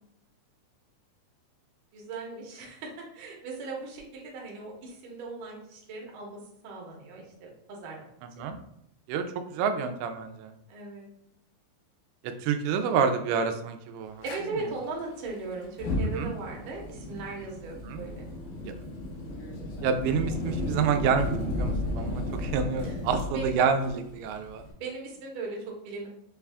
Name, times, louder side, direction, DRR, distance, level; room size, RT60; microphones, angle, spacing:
voice 1, 1.9-8.4 10.7-11.1 14.2-18.3 22.8-22.9 23.3-23.5 24.8-26.1, right 3 dB, 70° right, -2 dB, 2.2 m, -38 dB
voice 2, 9.5-10.5 12.2-14.2 16.1-16.3 17.8-18.0 18.6-18.7 19.8-24.6, right 6 dB, 85° right, 8 dB, 2.5 m, -28 dB
Fire, 14.2-14.4 15.6-24.7, left 1 dB, 70° left, 2.6 m, -34 dB
6.3 x 2.3 x 3.4 m, 0.76 s
omnidirectional pair, 4.5 m